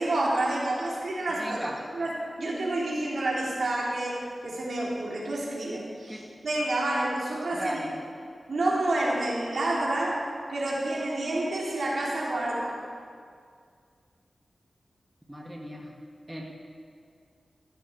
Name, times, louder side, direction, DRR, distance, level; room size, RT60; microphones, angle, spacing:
voice 1, 0.0-1.6 1.9-7.8 8.5-12.8, right 2 dB, 75° right, -4 dB, 3.5 m, -29 dB
voice 2, 1.4-1.8 6.1-6.2 7.5-7.9 15.3-15.9 16.3-16.4, equal, 10° right, -1 dB, 1.9 m, -36 dB
15.5 x 13.5 x 4.7 m, 2.2 s
wide cardioid pair, 75°, 0 cm